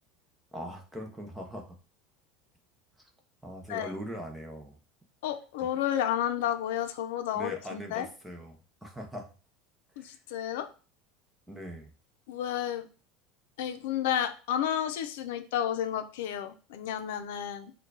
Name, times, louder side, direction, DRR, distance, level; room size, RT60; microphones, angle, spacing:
voice 1, 0.5-1.7 3.4-4.8 7.3-9.3 10.0-10.2 11.5-11.9, equal, 5° right, 2 dB, 0.7 m, -41 dB
voice 2, 5.2-8.1 10.0-10.7 12.3-12.9 13.6-17.7, left 10 dB, 90° left, 8 dB, 0.5 m, -31 dB
4.5 x 2.3 x 4.7 m, 0.35 s
cardioid pair, 180°, 0 cm